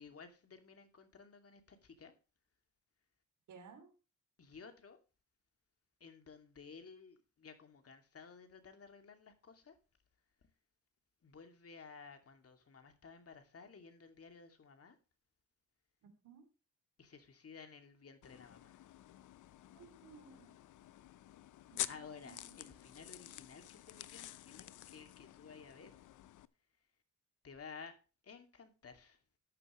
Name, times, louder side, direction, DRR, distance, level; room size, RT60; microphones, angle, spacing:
voice 1, 0.0-2.1 4.4-5.0 6.0-9.8 10.4-10.5 11.2-15.0 17.0-18.8 21.9-25.9 27.4-27.9 28.2-29.2, left 5 dB, 50° left, 2.6 m, -55 dB
voice 2, 3.5-3.9 16.0-16.4 19.7-20.6 21.7-22.6, right 6 dB, 85° right, 3.2 m, -58 dB
sound 1, 18.2-26.5, left 13 dB, 85° left, 0.7 m, -49 dB
13.5 x 9.2 x 3.2 m
cardioid pair, 70°, 30 cm